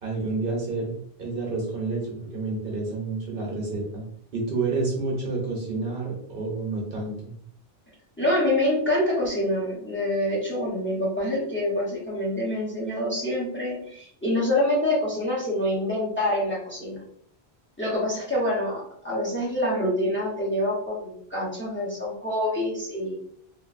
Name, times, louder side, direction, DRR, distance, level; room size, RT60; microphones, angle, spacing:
voice 1, 0.0-4.0 4.3-7.3, right 3 dB, 60° right, -2 dB, 0.9 m, -29 dB
voice 2, 8.2-17.0 17.8-23.1, left 1 dB, 10° left, -6 dB, 0.9 m, -26 dB
3.2 x 2.4 x 2.4 m, 0.67 s
omnidirectional pair, 1.1 m